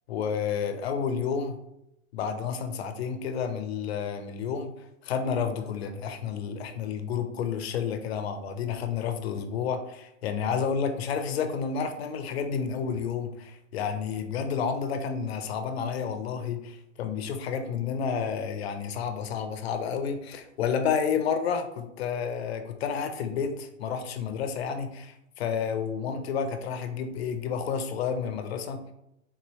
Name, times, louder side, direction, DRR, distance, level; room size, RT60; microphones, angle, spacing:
voice 1, 0.1-1.6 2.1-4.7 5.0-28.8, left 6 dB, 50° left, 7 dB, 0.5 m, -30 dB
3.7 x 2.7 x 3.0 m, 0.85 s
hypercardioid pair, 160°, 40 cm